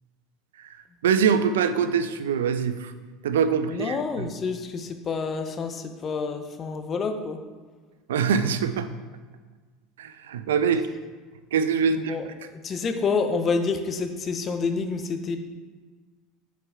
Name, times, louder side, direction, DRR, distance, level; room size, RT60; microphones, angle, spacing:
voice 1, 1.0-2.9 3.2-4.3 8.1-8.9 10.0-10.9 11.5-12.2, right 6 dB, 80° right, 10 dB, 0.4 m, -24 dB
voice 2, 3.7-7.4 11.9-12.3 12.6-15.4, left 4 dB, 35° left, 6 dB, 0.8 m, -28 dB
7.8 x 4.5 x 3.6 m, 1.4 s
hypercardioid pair, 85°, 0 cm